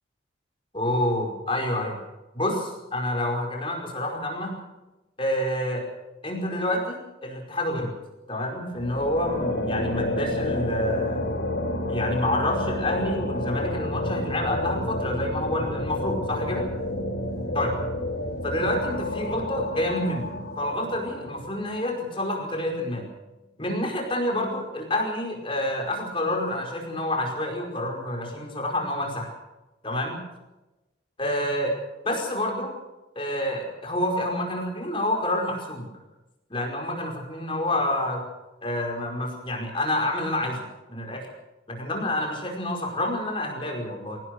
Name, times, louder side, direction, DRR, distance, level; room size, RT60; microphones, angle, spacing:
voice 1, 0.7-2.0 2.3-4.5 5.2-5.8 6.2-7.9 8.3-11.3 11.9-16.7 17.5-17.8 18.4-20.3 20.6-23.1 23.6-29.3 29.8-30.2 31.2-31.7 32.0-32.7 33.1-35.9 36.5-38.2 38.6-41.3 41.7-44.2, left 1 dB, 30° left, 0 dB, 5.0 m, -28 dB
sound 1, 8.7-21.9, left 1 dB, 65° left, 6.4 m, -30 dB
24.0 x 17.0 x 6.7 m, 1.0 s
head